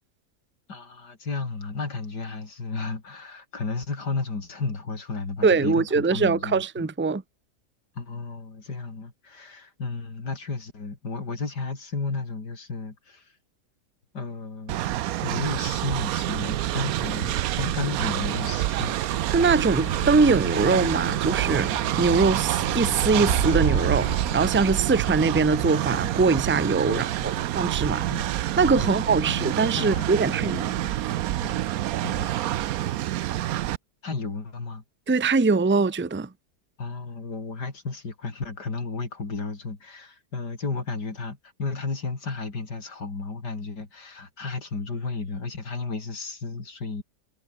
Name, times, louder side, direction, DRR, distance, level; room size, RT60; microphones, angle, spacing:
voice 1, 0.7-6.9 8.0-13.3 14.1-14.8 15.2-19.0 26.9-27.5 28.1-28.3 28.8-30.9 31.4-31.5 32.0-32.3 34.0-34.8 36.8-47.0, left 4 dB, 85° left, 4.3 m, -33 dB
voice 2, 5.4-7.2 19.3-21.7 22.0-28.1 28.6-30.7 35.1-36.3, right 4 dB, 15° right, 0.5 m, -22 dB
Train, 14.7-33.8, right 13 dB, 70° right, 1.0 m, -27 dB
Animal, 18.2-26.7, left 7 dB, 50° left, 1.4 m, -38 dB
omnidirectional pair, 1.7 m